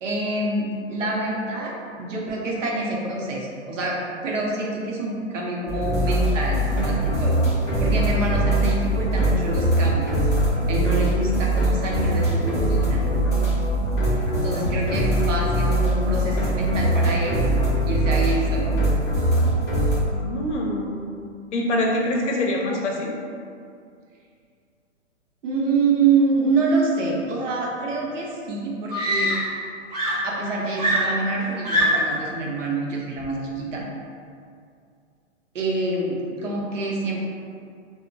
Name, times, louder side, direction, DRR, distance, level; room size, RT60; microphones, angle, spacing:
voice 1, 0.0-7.4 7.8-10.2 10.7-13.0 14.1-17.4 17.8-18.8 25.4-29.3 30.2-33.9 35.5-37.2, right 3 dB, 75° right, -2 dB, 0.7 m, -26 dB
sound 1, 5.7-19.9, right 1 dB, 15° left, 0.5 m, -22 dB
voice 2, 20.1-21.0 21.5-23.1, left 1 dB, 70° left, 0 dB, 0.6 m, -25 dB
Screaming, 28.1-28.2 28.9-29.7 29.9-32.2 33.2-33.5, equal, 35° right, 0.5 m, -23 dB
2.8 x 2.1 x 2.5 m, 2.3 s
hypercardioid pair, 165°, 38 cm